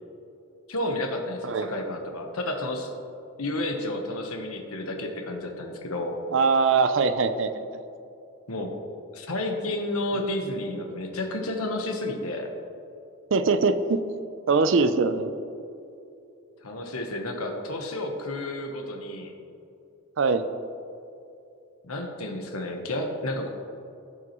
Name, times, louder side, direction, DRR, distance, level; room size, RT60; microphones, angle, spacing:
voice 1, 0.7-2.9 3.4-6.2 8.5-8.7 9.1-12.5 16.6-19.3 21.8-23.5, left 1 dB, 85° left, 3 dB, 1.1 m, -31 dB
voice 2, 6.3-7.8 13.3-14.0 14.5-15.3 20.2-20.4, right 4 dB, 60° right, 10 dB, 0.5 m, -22 dB
15.5 x 6.0 x 3.0 m, 2.7 s
head